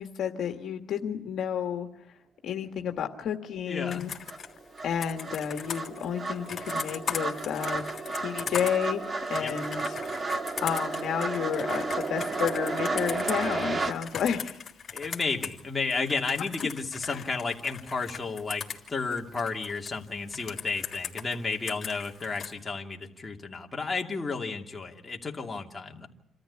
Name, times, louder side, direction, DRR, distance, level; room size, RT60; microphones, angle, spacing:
voice 1, 0.0-1.9 2.4-4.1 4.8-7.8 8.2-14.6 17.1-17.2, left 8 dB, 70° left, 4 dB, 1.7 m, -31 dB
voice 2, 3.7-4.1 9.3-9.5 14.9-18.6 18.9-26.1, left 4 dB, 25° left, 1 dB, 2.7 m, -32 dB
sound 1, 3.8-3.9 4.3-13.9, right 3 dB, 30° right, 1.7 m, -32 dB
Computer keyboard, 3.9-15.6 15.9-19.9 20.3-22.5, left 7 dB, 50° left, 3.0 m, -39 dB
27.5 x 13.5 x 9.9 m, 0.77 s
cardioid pair, 90°, 0 cm